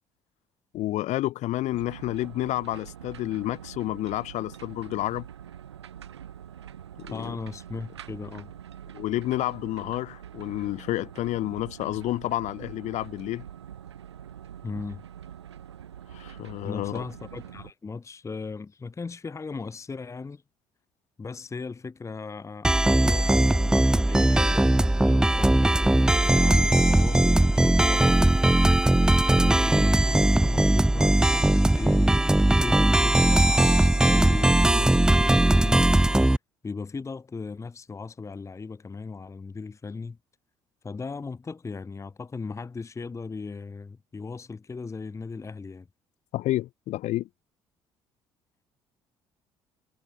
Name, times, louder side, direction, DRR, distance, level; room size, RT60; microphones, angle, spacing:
voice 1, 0.7-5.3 7.0-7.4 8.9-13.4 16.1-17.0 46.3-47.3, left 15 dB, 55° left, 1.3 m, -30 dB
sound 1, 1.7-17.7, right 10 dB, 80° right, 2.6 m, -44 dB
voice 2, 7.1-8.5 14.6-15.0 16.6-20.4 21.2-28.2 29.4-35.9 36.6-40.2 40.8-45.9, left 4 dB, 20° left, 0.9 m, -37 dB
sound 2, 22.6-36.4, right 1 dB, 5° right, 0.4 m, -20 dB
figure-of-eight pair, 50°, 14 cm